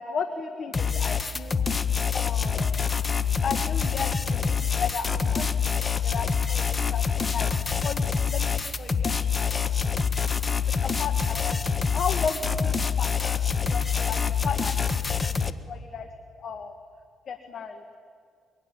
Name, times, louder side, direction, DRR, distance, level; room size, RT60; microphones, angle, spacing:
voice 1, 0.0-1.7 2.1-3.0 3.4-7.0 7.3-7.5 7.8-9.7 10.7-11.6 11.9-16.1 16.4-16.7 17.3-17.8, left 6 dB, 55° left, 7 dB, 1.9 m, -35 dB
sound 1, 0.7-15.5, left 6 dB, 30° left, 1.2 m, -26 dB
24.0 x 24.0 x 9.9 m, 2.3 s
cardioid pair, 90°, 0 cm